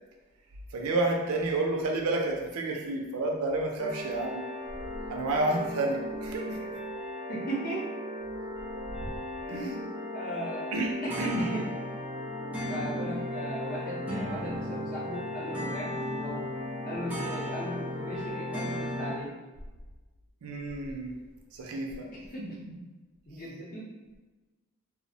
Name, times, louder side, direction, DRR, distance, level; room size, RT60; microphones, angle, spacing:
voice 1, 0.7-4.4 5.1-6.8 9.5-9.7 10.7-11.5 12.6-12.9 20.4-21.1 21.5-22.1 22.4-22.5, right 2 dB, 75° right, 1 dB, 0.4 m, -30 dB
sound 1, 3.8-19.2, left 1 dB, 5° right, 0.5 m, -36 dB
voice 2, 7.3-7.8 9.5-9.9 10.1-10.7 11.0-11.7 12.6-16.4 16.8-19.3 22.3-22.4 23.3-23.9, equal, 40° left, -5 dB, 0.7 m, -37 dB
2.4 x 2.0 x 2.7 m, 1.2 s
head